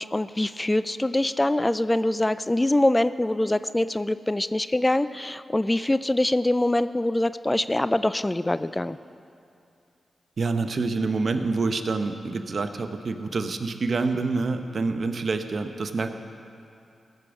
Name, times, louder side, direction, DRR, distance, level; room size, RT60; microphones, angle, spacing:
voice 1, 0.0-9.0, left 1 dB, 20° left, 14 dB, 0.3 m, -24 dB
voice 2, 10.4-16.1, right 3 dB, 60° right, 8 dB, 0.8 m, -27 dB
15.0 x 6.4 x 7.0 m, 2.5 s
supercardioid pair, 40°, 0 cm